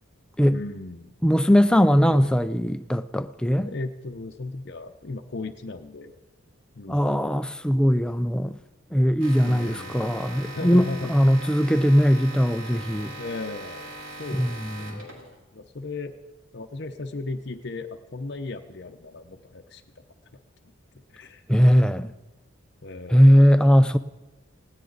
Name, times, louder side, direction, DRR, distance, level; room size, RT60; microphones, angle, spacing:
voice 1, 0.5-1.2 2.0-2.3 3.6-6.2 6.8-7.0 9.4-10.1 10.5-11.1 13.2-13.9 14.2-16.1 16.5-19.8 21.1-21.4 21.8-21.9 22.8-23.5, left 3 dB, 55° left, 0.7 m, -36 dB
voice 2, 1.2-3.7 6.9-8.6 8.9-13.1 14.3-15.0 21.5-22.1 23.1-24.0, equal, 5° left, 0.4 m, -20 dB
sound 1, 9.2-15.4, right 1 dB, 90° right, 4.1 m, -40 dB
19.5 x 17.0 x 4.0 m
head